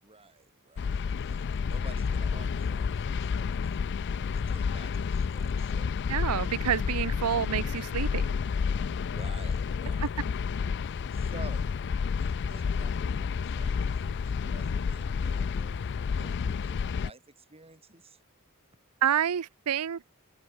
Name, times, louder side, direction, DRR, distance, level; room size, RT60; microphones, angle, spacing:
voice 1, 0.0-6.0 9.0-10.1 10.8-11.7 12.1-18.2, right 3 dB, 25° right, 6.2 m, -51 dB
sound 1, 0.8-17.1, left 5 dB, 50° left, 0.4 m, -30 dB
voice 2, 6.1-8.2 19.0-20.0, right 9 dB, 80° right, 0.5 m, -28 dB
head